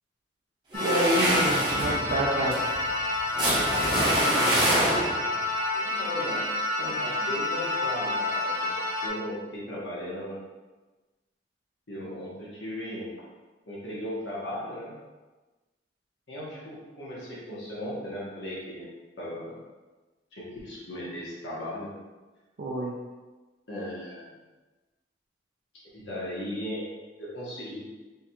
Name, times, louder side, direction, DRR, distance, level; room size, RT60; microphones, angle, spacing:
locust dronestretch, 0.7-9.1, left 2 dB, 15° left, 1.0 m, -29 dB
sound 1, 0.7-5.3, right 1 dB, 25° right, 1.0 m, -26 dB
voice 1, 0.8-2.6 22.6-22.9, right 1 dB, 65° right, -4 dB, 0.5 m, -28 dB
voice 2, 5.7-10.4 11.9-13.1 13.7-15.0 16.3-18.9 19.2-19.6 20.3-22.0 23.7-24.3 25.9-26.9 27.2-27.9, equal, 80° left, -7 dB, 1.2 m, -37 dB
3.5 x 2.3 x 4.3 m, 1.2 s
head